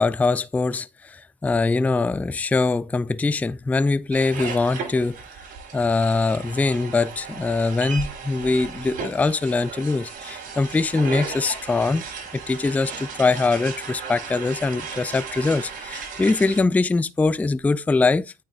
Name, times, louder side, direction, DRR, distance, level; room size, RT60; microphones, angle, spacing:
voice 1, 0.0-5.2 5.7-18.3, left 3 dB, 10° left, 0.3 m, -22 dB
sound 1, 4.1-16.6, right 5 dB, 55° right, 5.5 m, -35 dB
8.7 x 6.4 x 2.4 m
cardioid pair, 110°, 17 cm